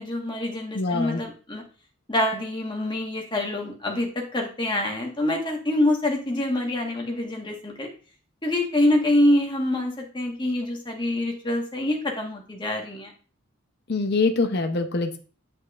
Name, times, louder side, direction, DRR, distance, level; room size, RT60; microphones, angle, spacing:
voice 1, 0.0-1.6 2.1-7.9 8.4-13.1, left 1 dB, 25° left, 1 dB, 1.4 m, -25 dB
voice 2, 0.7-1.2 13.9-15.2, left 3 dB, 50° left, 5 dB, 0.7 m, -24 dB
8.4 x 5.4 x 2.4 m, 0.37 s
head